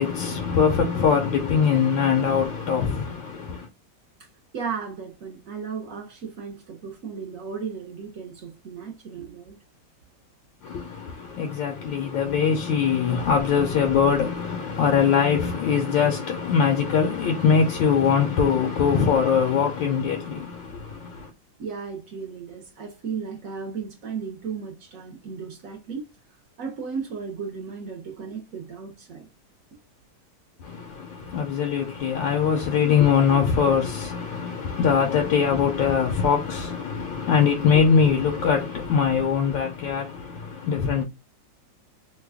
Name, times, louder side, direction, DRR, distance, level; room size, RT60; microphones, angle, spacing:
voice 1, 0.0-3.7 10.6-21.3 30.6-41.0, left 6 dB, 80° left, 1.3 m, -22 dB
voice 2, 4.5-9.6 21.6-26.0 26.6-29.3, right 6 dB, 60° right, 1.0 m, -35 dB
3.2 x 2.2 x 3.4 m
omnidirectional pair, 2.0 m